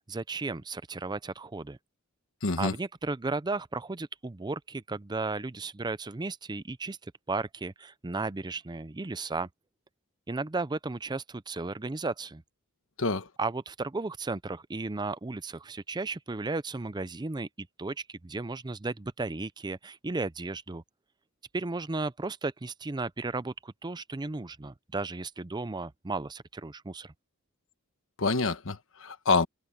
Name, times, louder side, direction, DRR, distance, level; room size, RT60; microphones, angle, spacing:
voice 1, 0.1-1.8 2.6-7.0 7.3-9.5 10.3-12.4 13.4-20.8 21.5-27.1, right 3 dB, 20° right, 0.5 m, -34 dB
voice 2, 2.4-2.7 13.0-13.3 28.2-29.5, left 3 dB, 65° left, 1.3 m, -27 dB
head